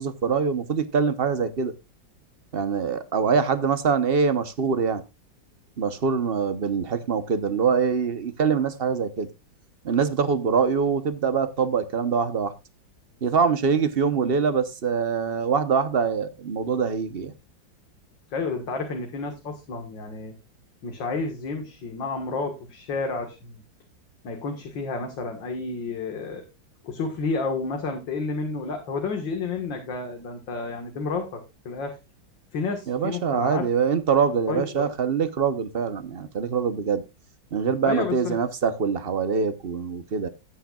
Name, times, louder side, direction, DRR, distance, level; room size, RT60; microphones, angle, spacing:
voice 1, 0.0-1.7 2.5-5.0 5.8-9.3 9.8-12.5 13.2-17.3 32.9-37.0 37.5-40.3, right 6 dB, 40° right, 0.9 m, -24 dB
voice 2, 18.3-20.3 20.8-23.6 24.2-26.4 26.8-31.4 31.7-32.0 32.5-33.6 34.5-34.9 37.8-38.4, left 4 dB, 75° left, 2.4 m, -30 dB
16.0 x 9.0 x 2.4 m
omnidirectional pair, 2.1 m